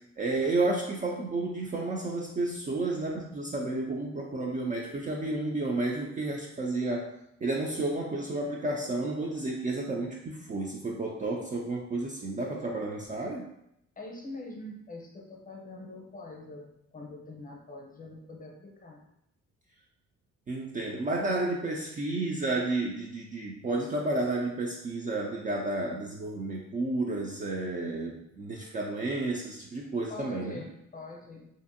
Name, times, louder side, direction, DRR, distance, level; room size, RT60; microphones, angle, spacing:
voice 1, 0.2-7.1 7.4-13.4 20.5-30.6, right 2 dB, 25° right, -1 dB, 0.4 m, -31 dB
voice 2, 14.0-19.0 30.1-31.5, left 2 dB, 30° left, 0 dB, 0.7 m, -44 dB
2.6 x 2.5 x 2.5 m, 0.78 s
cardioid pair, 90°, 30 cm